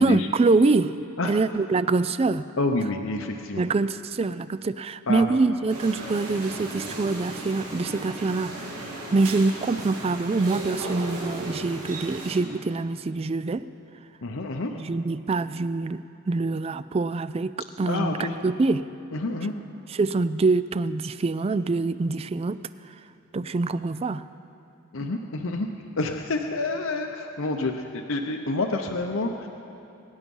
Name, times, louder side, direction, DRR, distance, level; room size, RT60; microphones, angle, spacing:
voice 1, 0.0-2.4 3.6-13.7 14.8-18.9 19.9-22.6 23.3-24.2, right 3 dB, 25° right, 15 dB, 0.3 m, -25 dB
voice 2, 2.6-3.6 5.1-5.3 14.2-14.7 17.9-18.3 19.1-19.5 24.9-25.7 26.0-29.5, left 2 dB, 65° left, 3 dB, 0.7 m, -28 dB
sound 1, 5.7-12.4, right 2 dB, 85° right, 3.2 m, -35 dB
23.0 x 9.7 x 5.4 m, 2.7 s
head